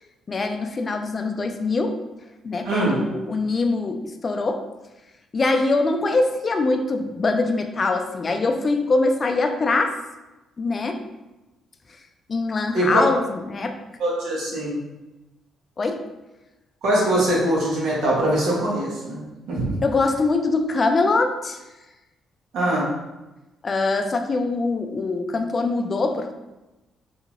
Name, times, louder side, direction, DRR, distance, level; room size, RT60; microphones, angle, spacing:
voice 1, 0.3-2.0 2.4-4.6 5.3-10.0 10.6-11.0 12.3-13.8 15.8-16.0 19.8-21.6 23.6-26.3, left 3 dB, 35° left, 6 dB, 0.3 m, -23 dB
voice 2, 2.6-3.0 12.7-13.0 14.0-14.8 16.8-19.2 19.5-19.7 22.5-22.9, right 1 dB, 80° right, -6 dB, 1.1 m, -22 dB
2.7 x 2.4 x 2.9 m, 1.0 s
cardioid pair, 90°, 0 cm